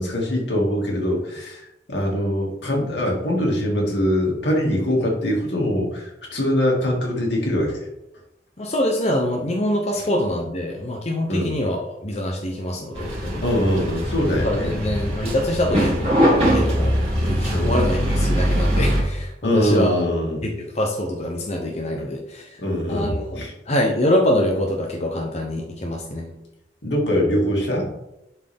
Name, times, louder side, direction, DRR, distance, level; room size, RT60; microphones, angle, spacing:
voice 1, 0.0-7.8 11.3-11.5 13.4-14.9 17.5-17.7 19.4-20.5 22.6-23.5 26.8-27.9, equal, 80° left, -1 dB, 2.3 m, -23 dB
voice 2, 8.6-13.6 14.4-16.1 16.4-20.0 20.4-22.6 22.9-26.3, left 1 dB, 40° left, 1 dB, 0.9 m, -25 dB
sound 1, 12.9-19.0, equal, 35° right, 2.8 m, -21 dB
11.0 x 4.6 x 3.6 m, 0.89 s
head